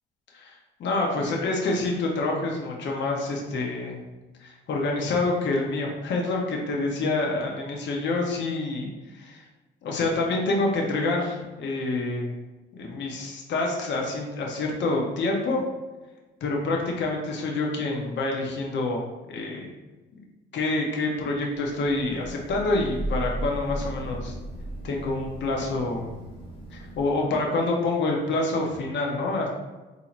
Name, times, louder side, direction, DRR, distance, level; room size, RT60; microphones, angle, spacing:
voice 1, 0.3-4.0 4.4-8.9 9.1-9.4 9.8-12.3 12.7-15.6 16.4-19.7 20.5-24.3 24.8-26.2 26.7-29.5, left 2 dB, 65° left, 0 dB, 0.7 m, -27 dB
Thunder / Rain, 21.6-27.4, right 2 dB, 25° left, 1.1 m, -36 dB
4.1 x 2.7 x 2.5 m, 1.1 s
cardioid pair, 90°, 20 cm